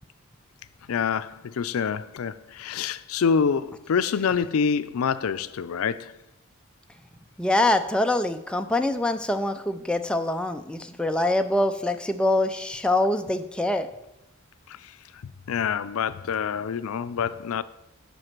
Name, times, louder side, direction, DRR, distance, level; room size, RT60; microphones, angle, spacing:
voice 1, 0.9-6.1 15.5-17.6, left 6 dB, 85° left, 0.4 m, -26 dB
voice 2, 7.4-13.9, left 1 dB, 5° left, 0.4 m, -24 dB
7.9 x 5.2 x 5.9 m
head